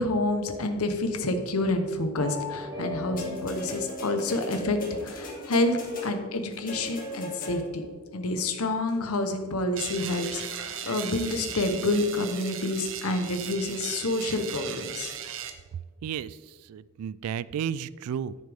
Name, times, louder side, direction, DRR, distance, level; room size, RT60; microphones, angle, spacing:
voice 1, 0.0-7.8 8.1-15.1, left 2 dB, 85° left, 7 dB, 0.9 m, -28 dB
sound 1, 2.1-5.1, left 2 dB, 15° right, 3.3 m, -38 dB
sound 2, 3.2-7.9 8.9-9.0, left 1 dB, 40° left, 2.4 m, -38 dB
sound 3, 9.7-15.5, right 9 dB, 60° right, 0.8 m, -37 dB
voice 2, 16.0-18.4, right 8 dB, 90° right, 17 dB, 0.3 m, -33 dB
10.5 x 9.4 x 3.5 m, 1.5 s
head